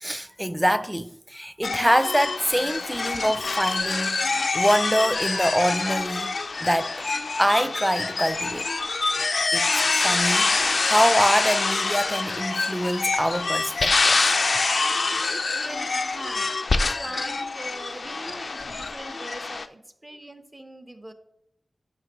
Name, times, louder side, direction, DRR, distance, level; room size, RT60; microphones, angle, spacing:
voice 1, 0.0-6.9 7.4-8.7 9.5-9.7 10.0-14.2, equal, 5° right, 0.3 m, -25 dB
sound 1, 1.6-19.7, left 3 dB, 65° left, 0.4 m, -25 dB
voice 2, 15.3-21.1, right 1 dB, 20° right, 0.8 m, -41 dB
11.5 x 5.9 x 3.0 m
wide cardioid pair, 90°, 0 cm